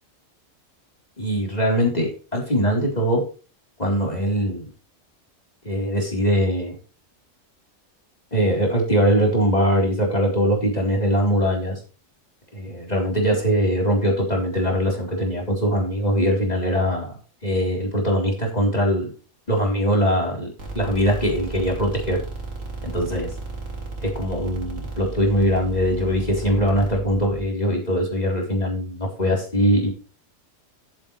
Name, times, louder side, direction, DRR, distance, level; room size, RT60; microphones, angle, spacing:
voice 1, 1.2-3.3 3.8-4.7 5.6-6.8 8.3-11.8 12.5-17.1 17.4-19.1 19.5-22.2 22.8-23.3 24.0-29.9, equal, 30° left, -1 dB, 4.0 m, -22 dB
sound 1, 20.6-27.4, right 3 dB, 80° right, 3.3 m, -34 dB
14.0 x 8.2 x 3.3 m, 0.35 s
omnidirectional pair, 1.3 m